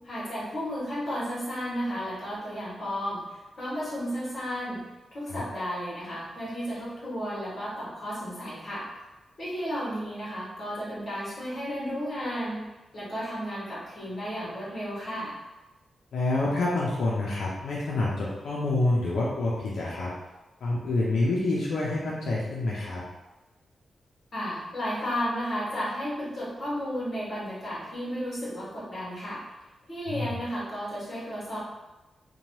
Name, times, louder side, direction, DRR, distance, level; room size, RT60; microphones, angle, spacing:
voice 1, 0.0-4.8 5.1-8.9 9.4-12.6 12.9-15.3 24.3-29.4 29.9-31.6, equal, 35° left, -8 dB, 1.1 m, -33 dB
voice 2, 16.1-20.1 20.6-23.0 30.1-30.4, left 2 dB, 80° left, -5 dB, 0.5 m, -27 dB
2.8 x 2.2 x 3.0 m, 1.1 s
wide cardioid pair, 175°, 0 cm